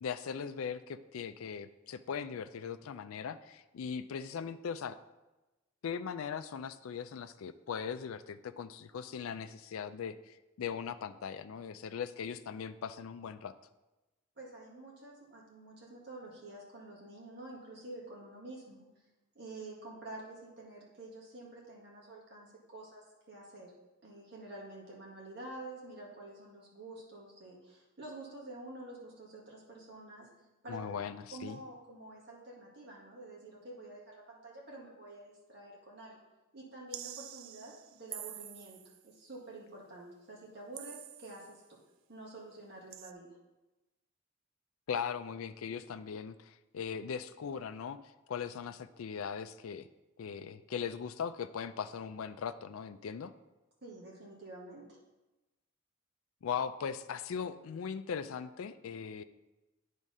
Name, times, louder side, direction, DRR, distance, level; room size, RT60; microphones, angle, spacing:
voice 1, 0.0-5.0 5.8-13.5 30.7-31.6 44.9-48.0 48.3-49.9 50.2-53.3 56.4-59.2, left 7 dB, 85° left, 12 dB, 0.4 m, -39 dB
voice 2, 14.4-18.9 19.3-23.7 24.0-30.3 30.6-30.8 31.3-36.2 36.5-38.8 39.0-41.6 42.1-43.4 53.8-54.8, right 2 dB, 50° right, -3 dB, 2.0 m, -48 dB
sound 1, 36.9-39.1 40.8-41.6 42.9-43.1, right 11 dB, 80° right, 0.4 m, -46 dB
8.9 x 3.7 x 5.4 m, 1.1 s
head